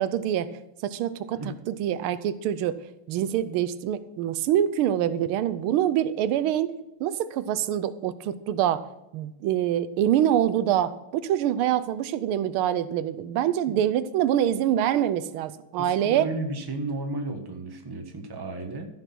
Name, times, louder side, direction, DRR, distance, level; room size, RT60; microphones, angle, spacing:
voice 1, 0.0-2.8 3.1-6.7 7.0-8.9 9.1-16.3, right 11 dB, 85° right, 14 dB, 1.5 m, -25 dB
voice 2, 15.8-18.9, right 2 dB, 15° right, 3 dB, 1.0 m, -33 dB
14.0 x 5.8 x 6.0 m, 0.93 s
omnidirectional pair, 2.3 m